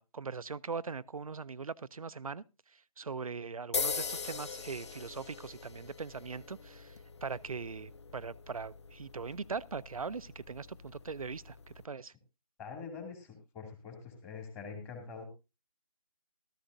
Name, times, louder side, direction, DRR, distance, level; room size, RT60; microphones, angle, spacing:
voice 1, 0.0-2.4 3.0-7.0 7.2-11.6 11.8-12.1, right 5 dB, 70° right, 0.6 m, -40 dB
sound 1, 3.7-11.8, left 5 dB, 50° left, 0.6 m, -42 dB
voice 2, 12.6-15.3, left 5 dB, 10° left, 2.3 m, -45 dB
14.5 x 14.0 x 2.6 m
figure-of-eight pair, 150°, 19 cm